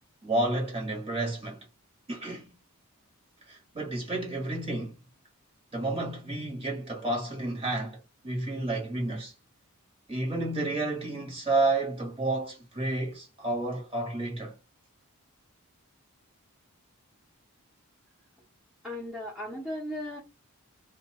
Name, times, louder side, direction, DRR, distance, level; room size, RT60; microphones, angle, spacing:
voice 1, 0.2-1.6 2.1-2.5 3.5-5.0 5.7-9.3 10.1-14.5, right 2 dB, 25° right, 1.2 m, -30 dB
voice 2, 18.8-20.2, left 1 dB, 5° right, 0.8 m, -36 dB
2.6 x 2.3 x 2.9 m
head